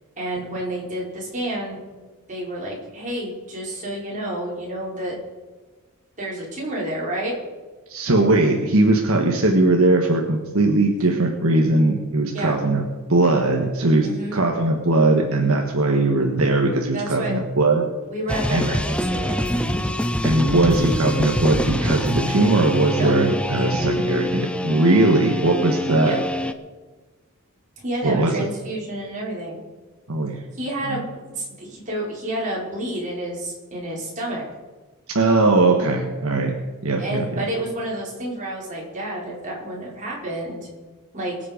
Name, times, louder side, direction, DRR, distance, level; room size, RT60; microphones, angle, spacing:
voice 1, 0.2-1.8 2.3-5.1 6.2-7.3 12.3-12.5 14.0-14.4 16.9-17.4 18.1-19.5 22.9-23.1 23.6-23.7 25.9-26.2 27.8-29.6 30.6-34.4 37.0-40.7 41.1-41.4, right 1 dB, 35° right, -4 dB, 4.7 m, -29 dB
voice 2, 7.9-12.8 13.1-17.9 18.5-18.7 20.2-26.1 28.0-28.5 30.1-30.4 30.8-31.0 35.1-36.6 36.8-37.4, right 2 dB, 65° right, 2 dB, 1.5 m, -19 dB
sound 1, 18.3-26.5, left 1 dB, 5° left, 0.6 m, -25 dB
23.0 x 7.8 x 5.2 m, 1.3 s
head